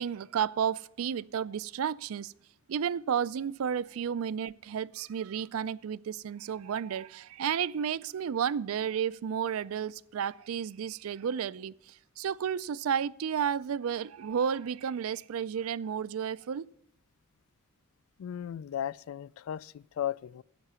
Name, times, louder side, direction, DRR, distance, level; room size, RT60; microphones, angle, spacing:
voice 1, 0.0-2.3 2.7-16.7, right 8 dB, 80° right, 0.4 m, -32 dB
voice 2, 18.2-20.4, left 10 dB, 75° left, 0.3 m, -36 dB
10.5 x 8.2 x 6.8 m
head